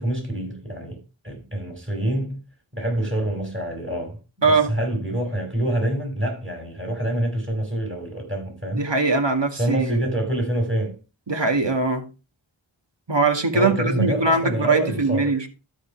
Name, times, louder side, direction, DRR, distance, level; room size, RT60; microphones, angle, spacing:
voice 1, 0.0-2.4 2.7-4.2 4.4-8.9 9.6-11.0 13.5-15.3, right 1 dB, 25° right, 6.6 m, -26 dB
voice 2, 8.7-10.1 11.3-12.1 13.1-15.5, right 3 dB, 60° right, 2.2 m, -21 dB
13.0 x 5.6 x 4.6 m
wide cardioid pair, 40°, 48 cm